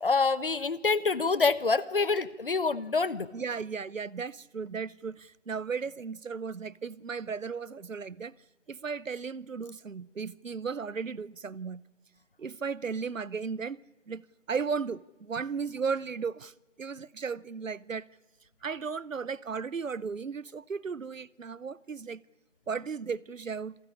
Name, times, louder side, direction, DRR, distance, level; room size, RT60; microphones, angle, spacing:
voice 1, 0.0-3.3, left 4 dB, 45° left, 1.0 m, -26 dB
voice 2, 3.3-8.3 8.7-11.8 12.4-13.8 14.1-16.5 16.8-18.1 18.6-22.2 22.7-23.8, right 5 dB, 85° right, 0.8 m, -35 dB
27.0 x 16.5 x 8.4 m
figure-of-eight pair, 165°, 38 cm